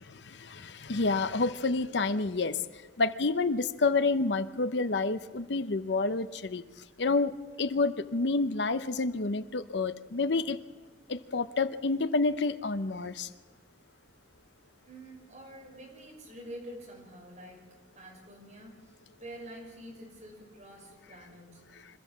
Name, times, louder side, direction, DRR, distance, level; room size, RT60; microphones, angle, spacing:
voice 1, 0.1-2.6 3.0-6.6 7.0-7.3 7.6-10.6 11.1-13.3, left 3 dB, 75° left, 0.8 m, -29 dB
voice 2, 14.8-17.7 17.9-21.9, right 1 dB, 40° right, 6.2 m, -47 dB
25.5 x 14.0 x 7.4 m
head